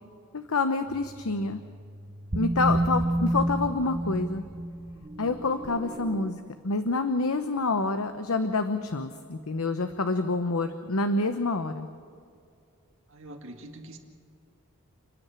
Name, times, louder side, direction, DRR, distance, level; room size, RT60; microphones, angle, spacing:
voice 1, 0.3-1.6 2.3-4.4 5.2-11.9, left 3 dB, 75° left, 9 dB, 0.9 m, -27 dB
sound 1, 0.9-6.3, right 1 dB, 25° right, 0.9 m, -31 dB
voice 2, 13.1-14.0, right 1 dB, 60° right, 3 dB, 2.2 m, -44 dB
30.0 x 10.0 x 9.0 m, 2.3 s
head